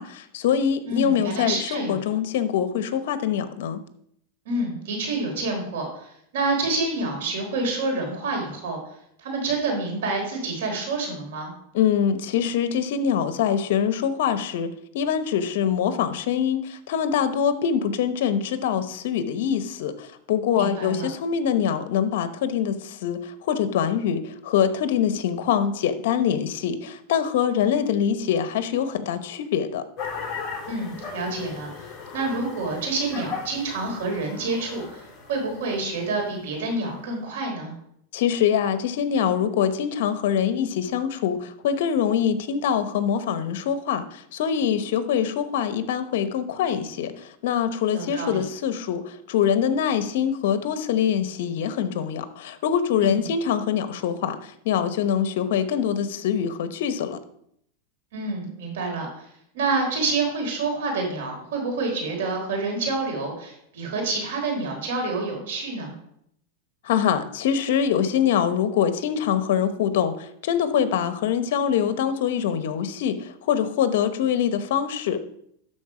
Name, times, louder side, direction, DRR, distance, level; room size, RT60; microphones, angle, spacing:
voice 1, 0.0-3.8 11.7-29.8 38.1-57.2 66.8-75.2, left 8 dB, 70° left, 11 dB, 0.9 m, -24 dB
voice 2, 0.9-2.0 4.5-8.8 9.2-11.5 20.6-21.1 30.7-31.9 32.1-35.0 35.3-37.7 47.9-48.4 53.0-53.2 58.1-59.2 59.5-65.9, right 3 dB, 80° right, 1 dB, 3.7 m, -28 dB
sound 1, 30.0-37.0, left 5 dB, 25° left, 3.9 m, -37 dB
12.0 x 4.4 x 4.9 m, 0.72 s
supercardioid pair, 145°, 0 cm